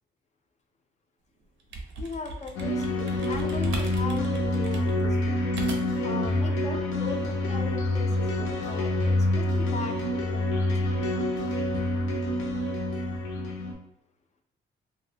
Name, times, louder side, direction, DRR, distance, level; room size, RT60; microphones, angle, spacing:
sound 1, 1.4-6.1, right 2 dB, 75° right, 0.5 m, -40 dB
voice 1, 2.0-5.4 6.0-10.6, left 3 dB, 35° left, 4 dB, 0.4 m, -39 dB
sound 2, 2.6-13.7, left 1 dB, 85° left, 0.6 m, -27 dB
2.2 x 2.1 x 3.2 m, 0.83 s
cardioid pair, 90°, 20 cm